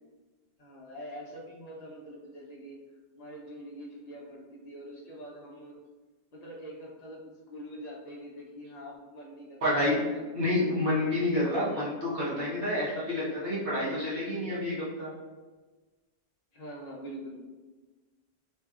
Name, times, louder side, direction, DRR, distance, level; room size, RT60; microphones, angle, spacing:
voice 1, 0.6-2.8 3.1-5.7 6.3-10.3 11.6-11.8 16.5-17.4, equal, 45° left, -4 dB, 0.7 m, -44 dB
voice 2, 9.6-10.0 10.3-15.1, left 1 dB, 60° right, -8 dB, 1.2 m, -29 dB
2.8 x 2.6 x 2.4 m, 1.3 s
omnidirectional pair, 1.1 m